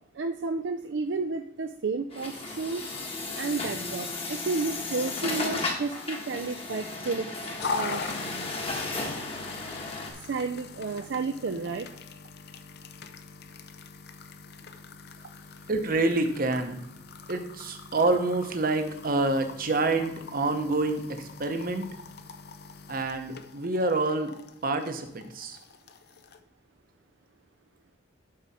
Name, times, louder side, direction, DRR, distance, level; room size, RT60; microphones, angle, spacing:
voice 1, 0.1-2.8 3.4-8.1 8.7-8.8 10.3-11.9, right 4 dB, 65° right, 6 dB, 0.4 m, -32 dB
Truck, 2.1-10.1, left 3 dB, 30° left, 1.3 m, -34 dB
sound 1, 7.6-26.4, left 4 dB, 55° left, 0.6 m, -42 dB
voice 2, 15.7-16.8 17.3-21.9 22.9-24.3 24.6-25.6, right 2 dB, 50° right, 7 dB, 0.9 m, -27 dB
11.5 x 4.8 x 4.2 m, 0.85 s
head